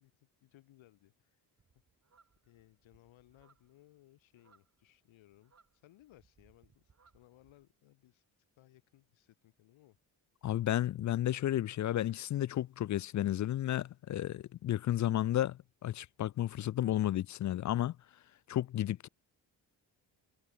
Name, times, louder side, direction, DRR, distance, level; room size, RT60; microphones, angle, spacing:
voice 1, 0.0-1.4 2.4-8.2 8.6-10.0, left 15 dB, 75° left, 6.7 m, -63 dB
sound 1, 1.6-7.7, right 5 dB, 35° right, 4.2 m, -70 dB
voice 2, 10.4-18.0 18.5-19.1, left 13 dB, 40° left, 0.4 m, -32 dB
supercardioid pair, 60°, 47 cm